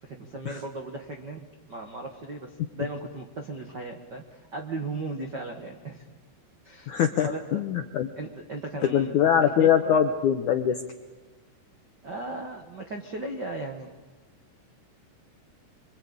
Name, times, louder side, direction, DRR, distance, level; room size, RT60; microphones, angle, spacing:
voice 1, 0.0-6.0 6.6-7.6 8.2-9.9 12.0-13.9, right 2 dB, 70° right, 3 dB, 1.0 m, -37 dB
voice 2, 6.9-8.1 8.8-10.8, left 9 dB, 75° left, 6 dB, 1.8 m, -23 dB
26.0 x 24.5 x 8.7 m, 1.2 s
omnidirectional pair, 4.9 m